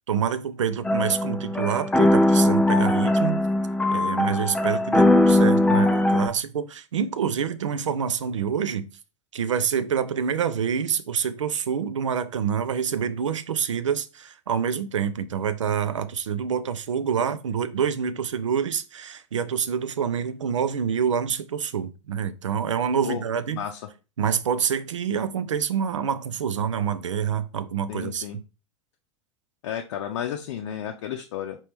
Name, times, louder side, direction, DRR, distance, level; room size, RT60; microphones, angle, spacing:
voice 1, 0.1-3.4 3.9-8.9 9.3-23.6 24.2-28.3, right 7 dB, 85° right, 0.5 m, -27 dB
sound 1, 0.8-6.3, left 1 dB, 5° left, 0.4 m, -20 dB
voice 2, 27.9-28.4 29.6-31.6, left 10 dB, 70° left, 0.5 m, -32 dB
4.4 x 2.9 x 3.4 m
hypercardioid pair, 90°, 15 cm